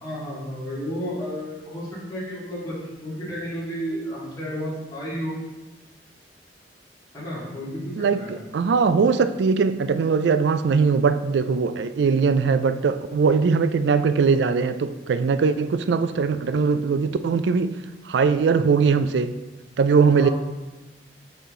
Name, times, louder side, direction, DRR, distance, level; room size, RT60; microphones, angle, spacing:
voice 1, 0.0-2.7 3.0-5.3 7.1-8.4 15.5-15.6 20.1-20.3, equal, 20° left, 2.2 m, -32 dB
voice 2, 8.0-17.7 18.1-19.3 19.8-20.3, right 5 dB, 75° right, 0.3 m, -21 dB
5.7 x 5.5 x 3.7 m
head